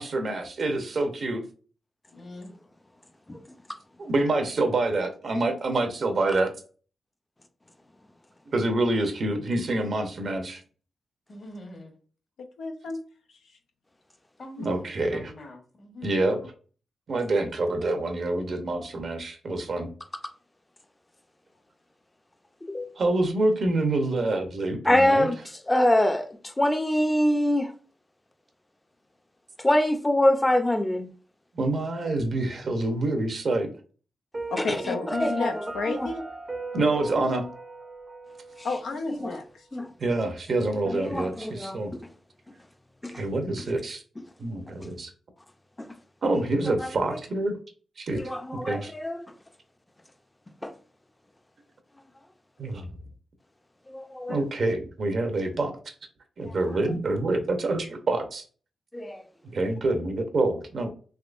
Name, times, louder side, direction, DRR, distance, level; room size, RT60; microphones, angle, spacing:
voice 1, 0.0-1.4 4.0-6.5 8.5-10.6 14.6-15.3 16.0-16.4 17.1-19.9 23.0-25.3 31.6-33.7 36.7-37.4 40.0-41.9 43.1-44.0 44.4-45.1 46.2-47.6 48.0-48.2 48.7-48.9 52.6-52.9 54.3-55.8 56.4-58.4 59.5-60.9, right 2 dB, 60° right, 0.7 m, -26 dB
voice 2, 2.1-2.5 11.3-11.9 14.4-16.1 16.4-16.5, left 1 dB, 55° left, 1.3 m, -44 dB
voice 3, 12.4-13.0 13.3-13.6 34.5-36.2 38.6-39.6, left 3 dB, 90° left, 0.5 m, -32 dB
voice 4, 22.6-22.9 24.8-27.7 29.6-31.1 34.6-36.1 38.6-38.7 39.1-39.4 39.7-39.9 40.8-42.1 43.0-43.3 44.2-44.3 45.8-46.0 46.3-47.2 48.1-49.3 50.6-50.7 53.9-54.4 56.4-56.8 58.9-59.3, left 1 dB, 20° left, 0.5 m, -26 dB
Piano, 34.3-39.3, right 3 dB, 30° right, 0.5 m, -37 dB
3.5 x 3.0 x 2.5 m
cardioid pair, 60°, 0 cm